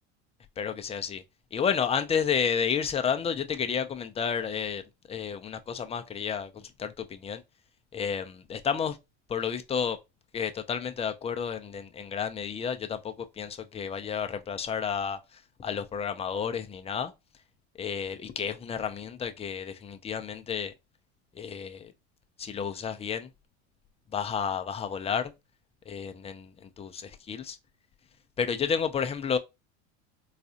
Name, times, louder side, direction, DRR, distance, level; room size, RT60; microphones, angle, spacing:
voice 1, 0.6-1.2 1.5-4.8 5.1-7.4 7.9-9.0 9.3-10.0 10.3-15.2 15.6-17.1 17.8-20.7 21.4-21.9 22.4-23.3 24.1-25.3 25.9-27.6 28.4-29.4, left 7 dB, 20° left, 0.4 m, -31 dB
4.0 x 2.4 x 2.7 m
supercardioid pair, 100°, 35 cm